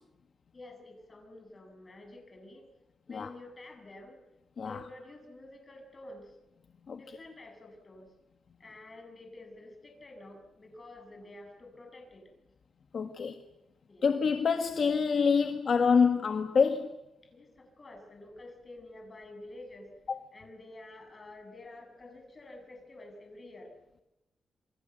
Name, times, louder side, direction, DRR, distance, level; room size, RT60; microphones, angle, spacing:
voice 1, 0.5-2.6 3.1-4.2 4.6-6.4 7.0-8.1 8.6-12.2 13.9-14.1 17.3-19.9 20.3-23.7, left 2 dB, 25° left, 4 dB, 7.2 m, -49 dB
voice 2, 12.9-13.3 14.0-17.0 20.1-20.2, left 5 dB, 50° left, 6 dB, 1.7 m, -26 dB
28.0 x 23.0 x 8.2 m, 0.91 s
wide cardioid pair, 140°, 0 cm